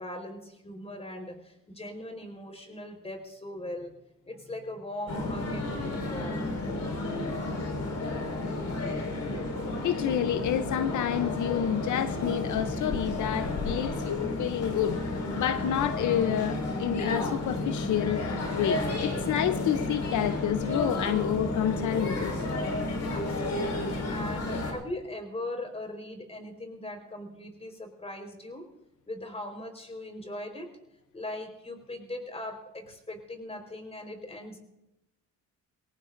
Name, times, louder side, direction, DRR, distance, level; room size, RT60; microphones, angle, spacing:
voice 1, 0.0-3.9 4.3-6.5 23.1-28.7 29.1-30.7 31.1-34.6, left 1 dB, 20° left, 5 dB, 4.6 m, -40 dB
sound 1, 5.1-24.7, left 2 dB, 60° left, 5.3 m, -32 dB
voice 2, 9.8-22.4, left 10 dB, 75° left, 11 dB, 0.8 m, -29 dB
23.5 x 18.0 x 2.7 m, 0.89 s
cardioid pair, 90°, 30 cm